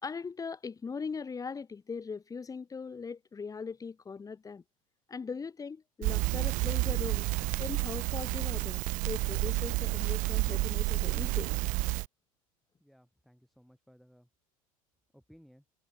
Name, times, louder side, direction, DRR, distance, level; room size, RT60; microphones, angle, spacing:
voice 1, 0.0-4.6 5.1-7.3 7.6-11.5, left 5 dB, 20° left, 2.1 m, -40 dB
Crackle, 6.0-12.1, right 23 dB, 45° right, 0.6 m, -30 dB
voice 2, 12.8-14.3 15.1-15.6, equal, ahead, 7.6 m, -60 dB
figure-of-eight pair, 80°, 18 cm